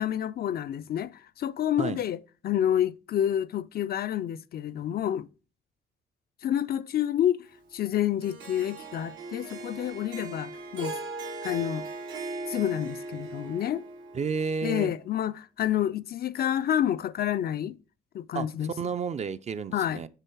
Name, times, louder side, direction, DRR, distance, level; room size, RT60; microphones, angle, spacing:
voice 1, 0.0-2.2 2.4-5.3 6.4-7.5 7.7-11.0 11.4-11.9 12.5-13.8 14.6-17.8 18.1-18.7 19.7-20.0, left 10 dB, 50° left, 0.4 m, -28 dB
Harp, 8.2-14.6, right 3 dB, 85° right, 1.4 m, -38 dB
voice 2, 14.1-14.9 18.3-20.1, right 5 dB, 35° right, 0.4 m, -31 dB
6.6 x 3.8 x 4.5 m
cardioid pair, 90°, 20 cm